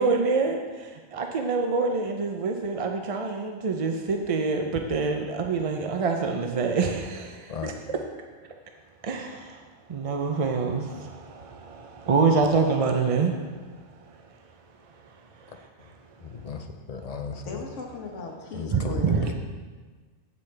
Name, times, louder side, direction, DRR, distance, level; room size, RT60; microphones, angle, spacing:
voice 1, 0.0-8.0 9.0-9.6 9.9-13.3 18.7-19.2, right 4 dB, 50° right, 4 dB, 0.4 m, -26 dB
voice 2, 6.6-7.0 17.3-19.3, left 4 dB, 80° left, 1 dB, 1.4 m, -38 dB
voice 3, 16.2-17.6 18.5-18.9 19.2-19.3, left 5 dB, 45° left, 5 dB, 0.5 m, -35 dB
8.5 x 8.2 x 3.3 m, 1.4 s
omnidirectional pair, 1.2 m